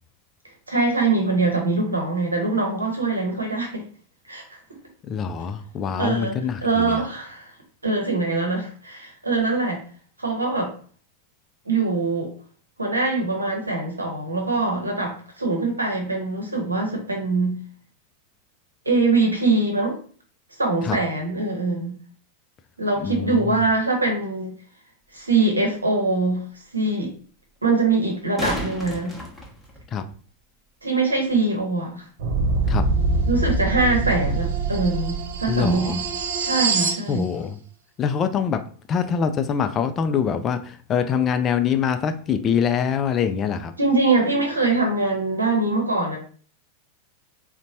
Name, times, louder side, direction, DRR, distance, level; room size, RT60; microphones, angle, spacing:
voice 1, 0.7-3.8 4.3-4.6 6.0-6.3 6.6-7.5 7.8-9.8 10.2-10.7 11.7-12.3 12.8-17.6 18.9-20.0 20.6-22.0 22.8-24.6 25.1-26.4 26.7-27.1 27.6-29.1 30.8-32.0 33.3-36.0 36.4-37.3 43.8-46.2, right 3 dB, 80° right, 1 dB, 0.8 m, -23 dB
voice 2, 5.0-7.0 20.8-21.0 23.0-23.7 29.9-30.0 32.7-32.8 35.5-36.0 37.1-37.6 38.0-38.6 38.9-43.7, left 7 dB, 25° left, 8 dB, 0.3 m, -24 dB
sound 1, 25.2-25.3 28.0-30.2 33.0-33.1, left 1 dB, 5° right, 0.9 m, -32 dB
sound 2, 32.2-37.0, right 3 dB, 55° right, 0.5 m, -24 dB
3.9 x 2.1 x 2.7 m, 0.44 s
figure-of-eight pair, 90°, 0 cm